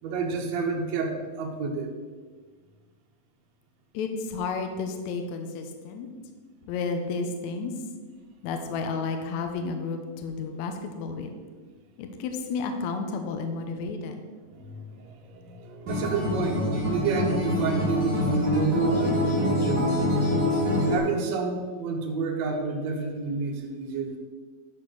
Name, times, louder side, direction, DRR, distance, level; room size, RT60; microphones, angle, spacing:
voice 1, 0.0-1.9 14.5-20.0 20.9-24.2, right 4 dB, 60° right, 0 dB, 2.2 m, -29 dB
voice 2, 3.9-6.1 6.7-7.7 8.4-11.4 12.0-14.2, left 4 dB, 70° left, 5 dB, 2.0 m, -32 dB
Acoustic guitar, 15.9-21.0, left 1 dB, 35° right, 2.5 m, -25 dB
11.0 x 4.4 x 6.3 m, 1.5 s
omnidirectional pair, 3.8 m